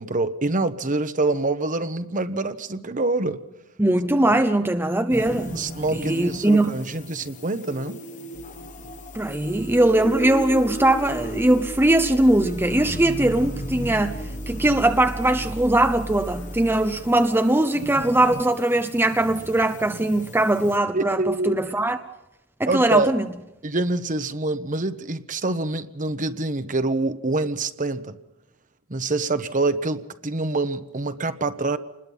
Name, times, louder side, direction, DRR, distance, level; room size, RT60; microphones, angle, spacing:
voice 1, 0.0-3.4 4.3-4.4 5.5-8.0 20.9-21.6 22.6-23.2 23.6-28.2 28.9-31.8, right 2 dB, 40° right, 1.1 m, -26 dB
voice 2, 3.8-5.5 5.9-6.8 9.1-14.2 14.5-22.0 22.6-23.2, right 1 dB, 10° right, 0.8 m, -20 dB
sound 1, 5.1-20.8, left 1 dB, 35° left, 1.3 m, -37 dB
sound 2, 8.3-17.4, right 1 dB, 15° left, 1.3 m, -38 dB
28.0 x 21.0 x 5.5 m
head